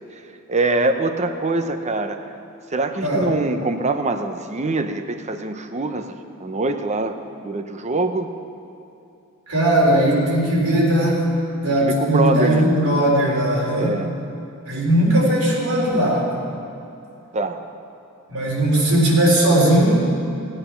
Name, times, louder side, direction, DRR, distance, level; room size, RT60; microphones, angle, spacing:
voice 1, 0.5-2.2 2.7-7.2 7.4-8.3 11.8-12.7 13.8-14.1 17.3-17.6, right 2 dB, 30° right, 7 dB, 0.8 m, -23 dB
voice 2, 3.0-3.3 9.5-11.2 11.6-14.0 14.6-16.3 18.3-20.1, right 1 dB, 80° right, -4 dB, 4.0 m, -18 dB
18.5 x 8.9 x 5.8 m, 2.7 s
head